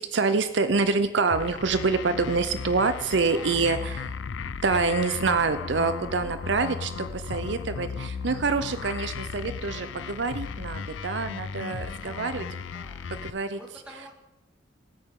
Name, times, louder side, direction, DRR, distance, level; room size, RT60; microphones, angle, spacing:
voice 1, 0.0-4.0 4.6-12.4 13.2-13.6, right 4 dB, 70° right, 11 dB, 0.6 m, -26 dB
sound 1, 1.3-13.3, left 5 dB, 85° left, 0.5 m, -36 dB
voice 2, 3.2-4.1 11.9-14.1, equal, 5° right, -1 dB, 2.3 m, -48 dB
20.0 x 8.9 x 3.7 m, 0.92 s
head